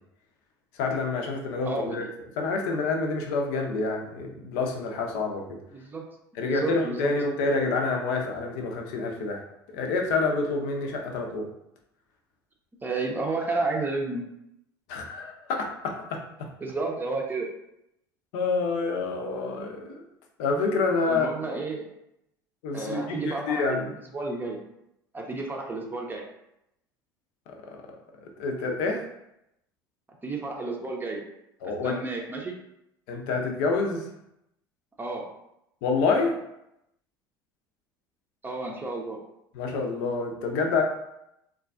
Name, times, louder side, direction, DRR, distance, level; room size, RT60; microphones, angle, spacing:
voice 1, 0.7-2.1 2.4-5.6 6.3-9.4 9.7-11.5 14.9-16.5 18.3-20.0 20.4-21.3 22.6-23.9 28.2-29.0 31.6-32.0 33.1-34.1 35.8-36.4 39.5-40.8, left 3 dB, 60° left, 2 dB, 0.6 m, -27 dB
voice 2, 1.7-2.0 5.7-6.0 6.4-7.1 12.8-14.2 16.6-17.5 21.1-21.9 22.7-24.6 25.1-26.2 30.2-31.2 31.8-32.6 35.0-35.2 38.4-39.2, right 3 dB, 15° right, -1 dB, 0.6 m, -31 dB
3.7 x 2.4 x 2.4 m, 0.82 s
figure-of-eight pair, 70°, 12 cm